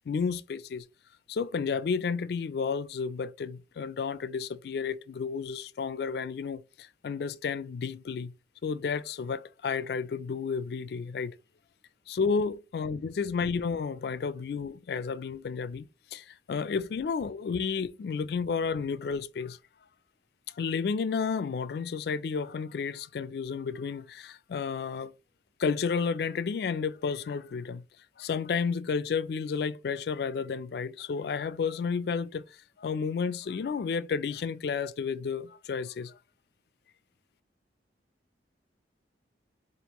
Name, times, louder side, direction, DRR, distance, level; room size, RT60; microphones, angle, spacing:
voice 1, 0.1-0.9 1.3-8.3 8.6-11.4 12.1-19.6 20.5-25.1 25.6-27.8 28.2-36.1, left 5 dB, 60° left, 0.3 m, -31 dB
5.2 x 2.5 x 2.9 m
head